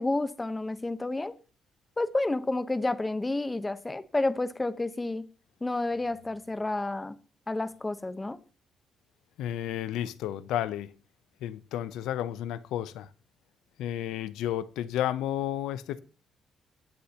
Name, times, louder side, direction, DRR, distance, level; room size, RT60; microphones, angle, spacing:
voice 1, 0.0-1.3 2.0-5.3 5.6-7.2 7.5-8.4, left 2 dB, 15° left, 1.0 m, -30 dB
voice 2, 9.4-10.9 11.4-13.1 13.8-16.0, left 11 dB, 90° left, 0.7 m, -32 dB
21.0 x 8.4 x 2.9 m
cardioid pair, 90°, 0 cm